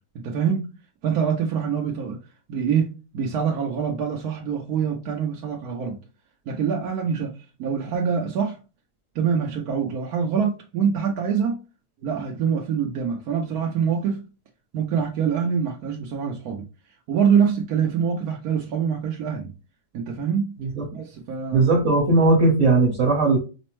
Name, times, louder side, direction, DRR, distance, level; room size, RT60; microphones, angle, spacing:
voice 1, 0.1-0.7 1.0-2.2 2.5-6.0 6.5-7.3 7.6-8.6 9.1-11.6 12.0-14.2 14.7-16.6 17.1-19.5 19.9-20.5 20.9-21.6, right 7 dB, 75° right, 1.2 m, -25 dB
voice 2, 21.5-23.4, right 3 dB, 55° right, 1.5 m, -18 dB
5.1 x 2.1 x 3.0 m
omnidirectional pair, 1.7 m